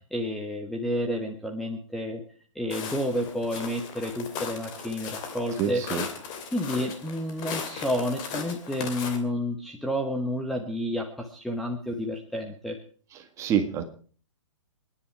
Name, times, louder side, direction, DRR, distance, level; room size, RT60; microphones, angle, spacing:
voice 1, 0.1-2.2 2.5-5.8 6.5-12.8, equal, ahead, 3 dB, 1.2 m, -30 dB
Walk footsteps, 2.7-9.2, left 6 dB, 25° left, 2.8 m, -37 dB
voice 2, 5.6-6.0 13.4-13.8, right 8 dB, 20° right, 7 dB, 1.8 m, -26 dB
27.5 x 10.5 x 4.7 m, 0.43 s
hypercardioid pair, 155°, 16 cm